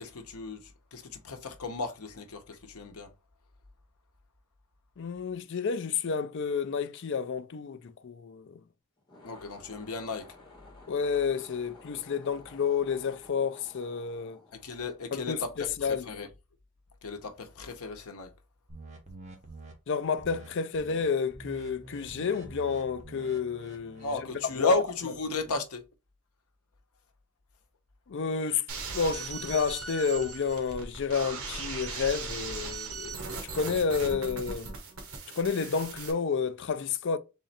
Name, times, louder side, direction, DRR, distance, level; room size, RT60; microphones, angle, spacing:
voice 1, 0.0-3.1 9.2-10.3 14.6-16.3 17.0-18.3 24.0-25.8, left 2 dB, 80° left, 0.9 m, -34 dB
voice 2, 5.0-8.6 10.9-14.4 15.1-16.1 19.9-24.3 24.6-24.8 28.1-28.6 28.9-34.7 35.3-37.2, left 6 dB, 55° left, 0.4 m, -30 dB
sound 1, 9.0-15.5, left 3 dB, 20° left, 1.9 m, -53 dB
sound 2, 18.7-19.7 20.2-20.5 20.7-21.0 21.3-24.6, right 2 dB, 30° right, 1.0 m, -47 dB
sound 3, 28.7-36.1, right 4 dB, 75° right, 1.3 m, -38 dB
3.8 x 3.1 x 4.1 m
head